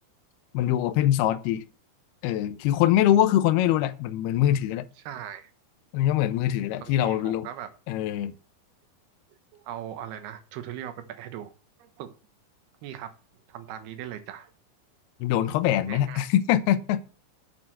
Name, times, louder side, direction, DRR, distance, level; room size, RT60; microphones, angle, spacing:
voice 1, 0.5-1.6 2.2-4.9 5.9-7.5 7.9-8.3 15.2-17.1, left 12 dB, 85° left, 2.3 m, -23 dB
voice 2, 5.0-5.5 6.8-7.7 9.3-11.5 11.8-12.1 12.8-13.1 13.5-14.5 15.9-16.3, right 10 dB, 70° right, 2.8 m, -39 dB
8.4 x 6.7 x 7.6 m
omnidirectional pair, 5.4 m